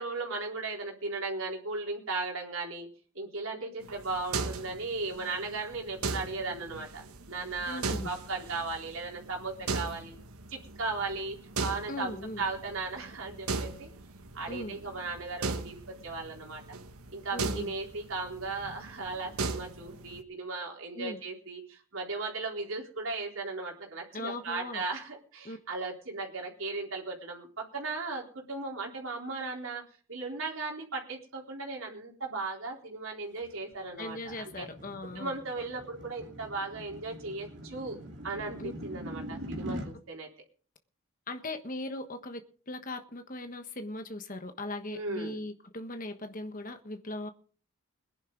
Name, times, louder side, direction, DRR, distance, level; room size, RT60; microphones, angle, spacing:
voice 1, 0.0-2.9 3.1-10.2 10.5-13.9 14.3-16.8 17.1-29.8 30.1-34.7 35.2-38.0 38.2-40.3 44.9-45.4, right 3 dB, 70° right, 3.9 m, -37 dB
sound 1, 3.8-20.2, right 3 dB, 85° right, 1.4 m, -39 dB
voice 2, 7.7-8.1 11.9-12.4 14.5-14.8 17.3-17.7 20.9-21.2 24.1-24.8 25.4-25.6 34.0-35.4 38.6-38.7 41.3-42.4 42.7-47.3, left 2 dB, 40° left, 1.3 m, -39 dB
sound 2, 33.4-39.9, equal, 50° right, 2.9 m, -43 dB
21.0 x 11.0 x 3.9 m
head